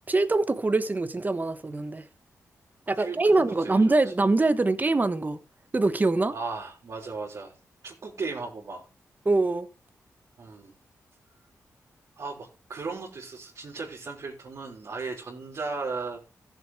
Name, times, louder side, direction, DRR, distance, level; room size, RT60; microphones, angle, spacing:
voice 1, 0.1-2.0 2.9-5.4 5.7-6.3 9.2-9.7, right 2 dB, 30° right, 1.2 m, -23 dB
voice 2, 3.0-3.9 6.3-7.5 7.8-8.9 10.4-10.8 12.2-16.3, right 4 dB, 60° right, 3.6 m, -36 dB
14.0 x 7.7 x 3.7 m
cardioid pair, 70°, 6 cm